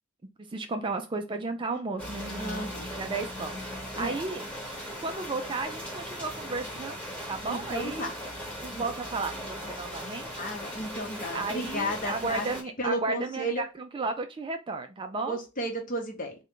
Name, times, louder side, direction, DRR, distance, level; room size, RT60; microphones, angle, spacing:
voice 1, 0.4-4.4 5.0-7.0 7.3-8.1 8.5-10.4 11.3-15.4, right 3 dB, 25° right, 0.3 m, -34 dB
sound 1, 2.0-12.6, equal, 5° left, 1.0 m, -38 dB
voice 2, 2.4-2.9 3.9-4.2 7.5-8.1 8.7-8.9 10.4-12.5 12.8-13.6 15.3-16.3, equal, 40° left, 0.9 m, -33 dB
3.7 x 2.2 x 3.6 m
head